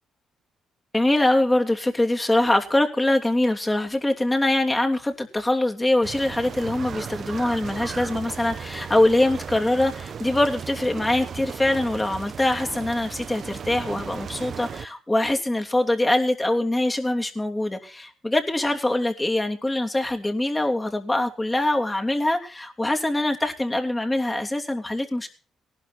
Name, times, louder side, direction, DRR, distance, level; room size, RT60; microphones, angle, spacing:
voice 1, 0.9-25.3, left 1 dB, 15° left, 3 dB, 3.0 m, -23 dB
sound 1, 6.0-14.9, right 7 dB, 50° right, 0.8 m, -36 dB
18.5 x 11.5 x 4.4 m, 0.36 s
cardioid pair, 90°, 0 cm